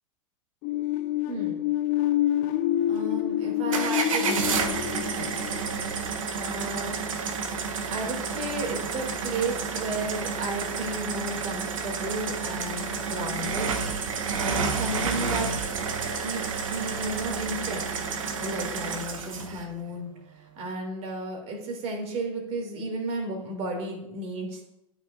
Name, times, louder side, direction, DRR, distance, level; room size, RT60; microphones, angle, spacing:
sound 1, 0.6-6.3, left 13 dB, 45° left, 0.6 m, -27 dB
voice 1, 1.3-1.6 2.9-5.6 6.4-7.0 7.9-13.7 14.4-15.5 15.9-17.8 18.4-20.1 20.6-24.6, right 2 dB, 40° right, 1 dB, 2.7 m, -33 dB
sound 2, 3.7-19.6, right 5 dB, 70° right, 1.1 m, -30 dB
12.5 x 6.0 x 2.6 m, 0.87 s
figure-of-eight pair, 90°, 17 cm